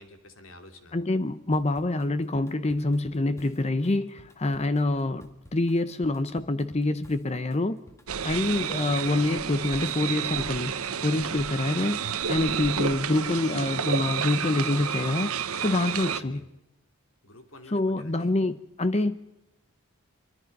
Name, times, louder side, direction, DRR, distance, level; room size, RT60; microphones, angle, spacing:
voice 1, 0.0-1.0 16.0-16.4 17.2-18.3, left 2 dB, 65° left, 7 dB, 2.6 m, -49 dB
voice 2, 0.9-7.8 8.2-16.4 17.7-19.2, left 2 dB, 30° left, 12 dB, 0.7 m, -26 dB
Drum kit / Drum, 1.5-8.8, left 1 dB, 15° left, 1.8 m, -54 dB
sound 1, 8.1-16.2, right 7 dB, 80° right, 1.1 m, -30 dB
24.5 x 24.5 x 5.4 m, 0.92 s
head